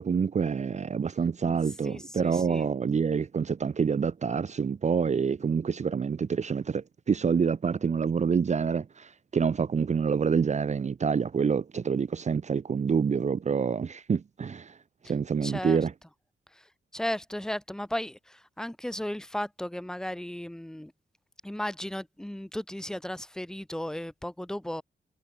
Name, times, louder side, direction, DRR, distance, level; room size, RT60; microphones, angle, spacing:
voice 1, 0.0-14.7 15.1-15.9, right 6 dB, 35° right, 0.7 m, -27 dB
voice 2, 1.8-2.7 15.4-15.8 16.9-20.9 21.4-24.8, left 1 dB, 5° left, 0.6 m, -35 dB
wide cardioid pair, 170°, 19 cm